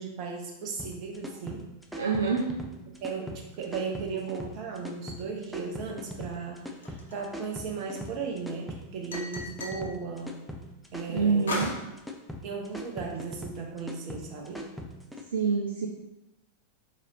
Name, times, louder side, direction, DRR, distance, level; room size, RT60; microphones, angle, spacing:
voice 1, 0.0-1.7 3.0-10.4 10.9-11.6 12.4-14.6, right 5 dB, 40° right, 0 dB, 0.9 m, -36 dB
sound 1, 0.8-15.2, left 1 dB, ahead, 0.5 m, -41 dB
voice 2, 2.0-2.5 11.1-11.8 15.3-15.9, right 5 dB, 60° right, -1 dB, 0.5 m, -26 dB
sound 2, 6.8-8.0 9.1-9.9 11.5-11.9, left 2 dB, 65° left, 0.7 m, -35 dB
4.2 x 3.1 x 3.8 m, 0.93 s
figure-of-eight pair, 90°, 0 cm